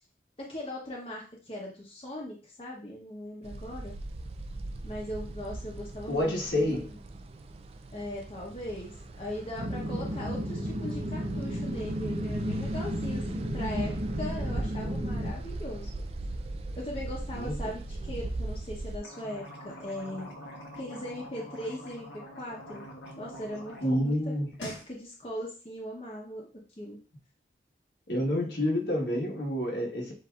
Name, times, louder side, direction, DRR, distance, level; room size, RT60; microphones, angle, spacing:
voice 1, 0.5-3.9 4.8-7.0 7.9-15.9 16.8-20.3 20.8-22.8 23.2-26.4 26.8-27.0, left 1 dB, 30° left, -3 dB, 0.9 m, -39 dB
sound 1, 3.4-19.0, right 2 dB, 35° right, 0.3 m, -39 dB
voice 2, 6.1-6.9 17.4-17.6 23.8-24.5 28.1-30.1, left 1 dB, 70° left, -1 dB, 1.3 m, -28 dB
sound 2, 9.6-15.3, equal, 70° right, 0.8 m, -33 dB
sound 3, 18.9-24.0 24.3-24.9, left 1 dB, 90° left, 1.2 m, -44 dB
7.7 x 2.7 x 2.4 m, 0.36 s
head